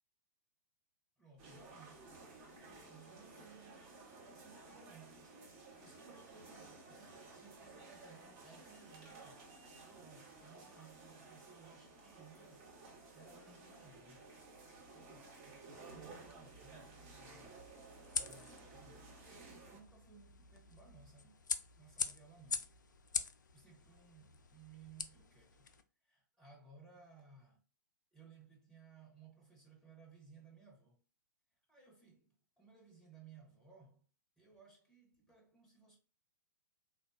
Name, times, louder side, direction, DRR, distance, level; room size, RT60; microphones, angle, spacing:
voice 1, 1.2-5.4 5.8-9.5 9.8-14.3 14.9-17.7 18.2-21.4 21.8-22.7 23.5-25.7 26.0-27.6 28.1-31.0 31.7-34.0 34.4-36.0, right 5 dB, 5° left, 0.9 m, -61 dB
sound 1, 1.4-19.8, right 3 dB, 35° right, 1.1 m, -56 dB
sound 2, 15.9-25.8, left 5 dB, 65° left, 0.4 m, -45 dB
3.6 x 2.2 x 2.6 m
figure-of-eight pair, 110°, 11 cm